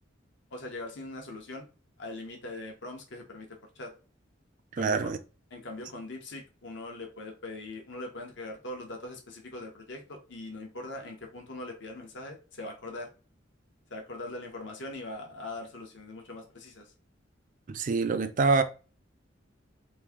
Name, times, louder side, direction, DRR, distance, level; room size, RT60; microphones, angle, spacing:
voice 1, 0.5-1.6 2.0-3.9 4.8-5.1 5.5-13.1 13.9-16.9, left 2 dB, 65° left, 1.0 m, -41 dB
voice 2, 4.8-5.2 17.7-18.6, right 4 dB, 45° right, 0.4 m, -25 dB
3.1 x 2.7 x 3.5 m
head